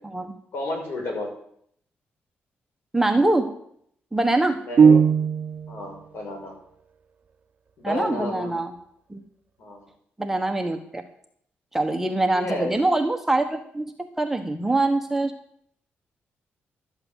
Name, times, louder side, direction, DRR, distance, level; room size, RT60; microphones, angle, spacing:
voice 1, 0.5-1.3 4.6-5.0 5.7-6.5 7.8-8.5 9.6-9.8 12.3-12.7, left 2 dB, 60° left, 1 dB, 5.8 m, -31 dB
voice 2, 2.9-3.5 4.1-4.6 7.8-8.7 9.1-9.2 10.2-11.0 11.7-15.3, right 2 dB, 10° right, 5 dB, 1.2 m, -24 dB
sound 1, 4.8-5.8, right 6 dB, 40° right, 0.7 m, -17 dB
12.5 x 7.8 x 8.0 m, 0.67 s
cardioid pair, 120°, 4 cm